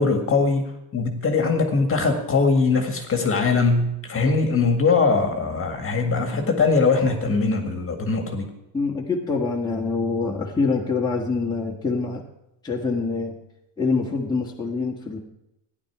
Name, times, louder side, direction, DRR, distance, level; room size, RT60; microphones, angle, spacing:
voice 1, 0.0-8.5, left 4 dB, 25° left, 4 dB, 1.9 m, -21 dB
voice 2, 8.7-12.2 12.6-13.3 13.8-15.2, left 4 dB, 10° left, -3 dB, 1.7 m, -25 dB
14.5 x 11.0 x 4.9 m, 0.85 s
cardioid pair, 135°, 47 cm